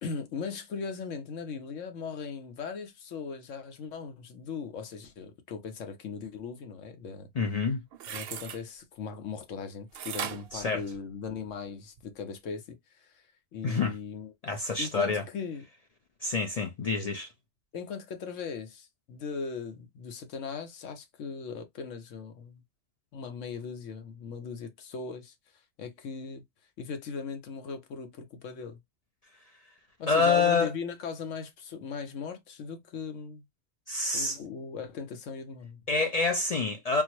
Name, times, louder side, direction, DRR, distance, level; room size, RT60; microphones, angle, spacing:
voice 1, 0.0-7.3 8.1-13.2 13.5-14.3 14.8-15.6 17.7-22.6 23.1-25.3 25.8-26.4 26.8-28.8 30.0-33.4 34.1-35.8, left 5 dB, 80° left, 1.1 m, -38 dB
voice 2, 7.4-7.8 10.5-10.8 13.6-13.9 14.4-15.2 16.2-17.3 30.1-30.7 33.9-34.4 35.9-37.0, left 4 dB, 60° left, 0.4 m, -27 dB
sound 1, 7.9-8.6 9.9-11.5 12.0-12.1, right 9 dB, 65° right, 0.6 m, -38 dB
3.7 x 2.0 x 2.9 m
omnidirectional pair, 1.3 m